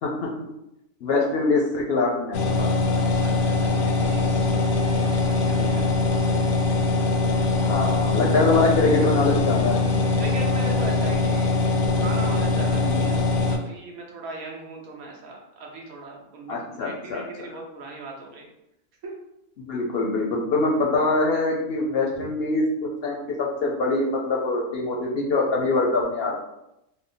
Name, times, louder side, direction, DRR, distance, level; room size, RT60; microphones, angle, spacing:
voice 1, 1.0-2.7 5.5-5.8 7.6-9.8 12.8-13.1 16.5-17.2 19.7-26.4, left 3 dB, 60° left, -2 dB, 0.7 m, -24 dB
sound 1, 2.3-13.6, left 3 dB, 85° left, 1.0 m, -22 dB
voice 2, 2.9-4.6 4.9-5.8 7.2-7.4 10.2-11.7 11.9-18.5 19.0-19.1 22.2-22.3, right 3 dB, 90° right, -1 dB, 1.3 m, -39 dB
3.5 x 2.1 x 3.8 m, 0.86 s
omnidirectional pair, 1.4 m